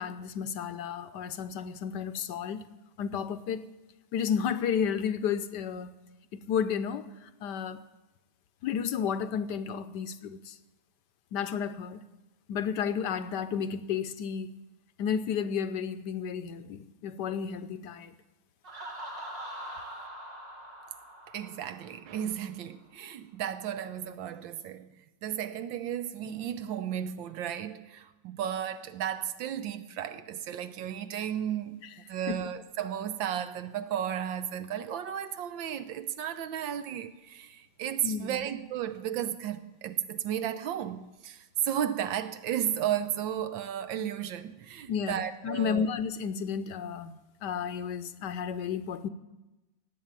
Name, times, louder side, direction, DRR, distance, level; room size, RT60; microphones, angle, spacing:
voice 1, 0.0-2.6 3.0-3.6 4.1-5.9 6.3-7.8 8.6-10.6 11.3-12.0 12.5-14.5 15.0-18.1 32.3-32.4 38.0-38.4 44.9-49.1, left 7 dB, 70° left, 1.2 m, -32 dB
Laughter, 18.6-22.3, right 1 dB, 65° right, 4.0 m, -43 dB
voice 2, 21.3-24.9 25.2-31.8 32.1-45.9, right 10 dB, 80° right, 1.6 m, -34 dB
17.5 x 7.8 x 8.9 m
omnidirectional pair, 2.1 m